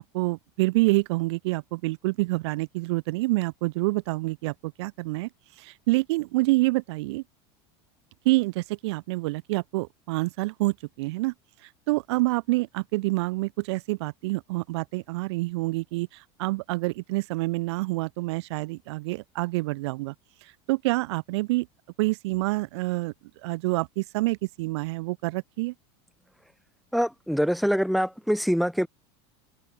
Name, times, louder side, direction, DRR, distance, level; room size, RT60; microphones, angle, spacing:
voice 1, 0.0-5.3 5.6-7.2 8.3-11.3 11.6-20.1 20.4-21.7 22.0-23.1 23.4-25.7, right 22 dB, 70° right, 1.9 m, -27 dB
voice 2, 26.9-28.9, equal, ahead, 3.8 m, -24 dB
open air
supercardioid pair, 165°, 15 cm